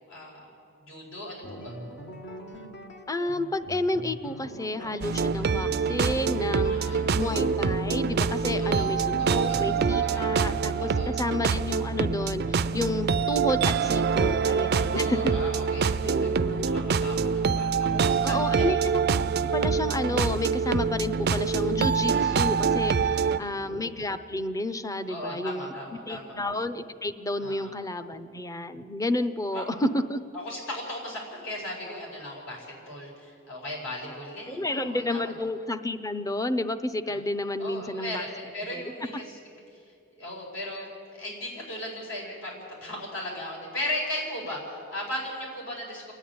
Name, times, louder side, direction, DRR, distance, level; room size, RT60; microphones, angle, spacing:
voice 1, 0.1-0.5 0.8-1.7 6.7-7.0 8.5-8.9 9.2-9.7 10.0-10.2 10.8-11.1 14.8-18.7 23.0-23.7 25.1-26.4 27.4-27.7 29.5-29.6 30.3-35.3 37.1-37.2 37.6-39.4 40.2-46.1, left 1 dB, 75° left, -2 dB, 5.2 m, -37 dB
sound 1, 1.4-10.8, left 1 dB, 60° left, 1.5 m, -42 dB
voice 2, 3.1-15.3 16.0-16.7 18.2-18.8 19.4-25.7 26.1-30.2 34.5-38.3 38.7-38.9, left 1 dB, 15° left, 10 dB, 0.7 m, -31 dB
sound 2, 5.0-23.4, right 5 dB, 55° right, 0.5 m, -25 dB
27.5 x 10.0 x 9.5 m, 2.6 s
head